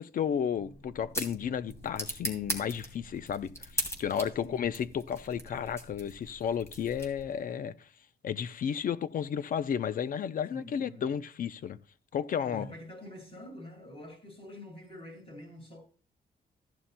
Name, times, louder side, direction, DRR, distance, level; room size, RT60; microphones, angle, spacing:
voice 1, 0.0-7.9 8.2-11.8 12.1-12.7, left 8 dB, 55° left, 0.6 m, -33 dB
sound 1, 0.5-7.4, equal, 15° left, 2.6 m, -40 dB
voice 2, 10.5-11.1 12.4-15.8, left 1 dB, 35° left, 6.1 m, -46 dB
14.0 x 11.5 x 2.2 m
cardioid pair, 120°, 17 cm